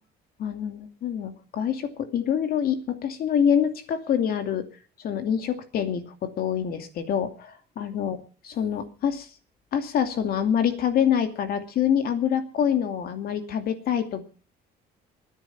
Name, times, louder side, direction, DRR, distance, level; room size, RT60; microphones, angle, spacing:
voice 1, 0.4-4.6 5.0-8.2 8.6-9.3 9.7-14.2, left 8 dB, 65° left, 7 dB, 2.5 m, -26 dB
21.5 x 9.9 x 5.9 m, 0.39 s
cardioid pair, 110°, 17 cm